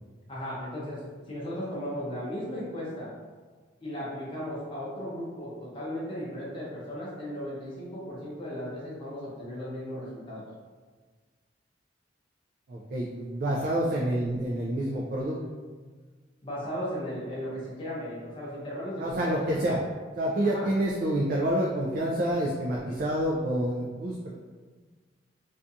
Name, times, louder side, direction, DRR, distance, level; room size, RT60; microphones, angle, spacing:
voice 1, 0.3-3.1 3.8-10.4 16.4-19.5 20.5-20.7, equal, 30° left, -8 dB, 0.6 m, -36 dB
voice 2, 12.7-15.4 19.0-19.8 20.2-24.3, right 1 dB, 50° right, -3 dB, 0.3 m, -28 dB
2.5 x 2.3 x 2.6 m, 1.4 s
head